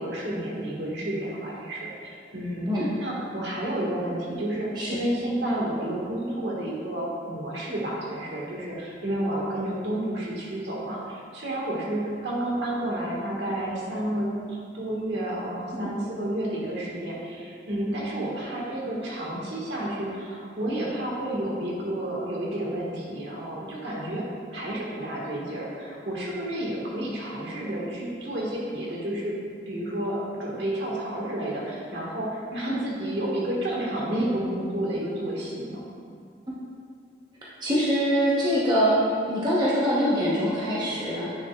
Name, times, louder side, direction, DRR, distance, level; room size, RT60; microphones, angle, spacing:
voice 1, 0.0-24.2 24.5-29.3 29.6-35.8, right 1 dB, 65° right, -4 dB, 1.6 m, -30 dB
voice 2, 37.6-39.0 39.3-41.3, equal, 20° right, -7 dB, 0.9 m, -24 dB
9.4 x 6.6 x 2.3 m, 2.3 s
head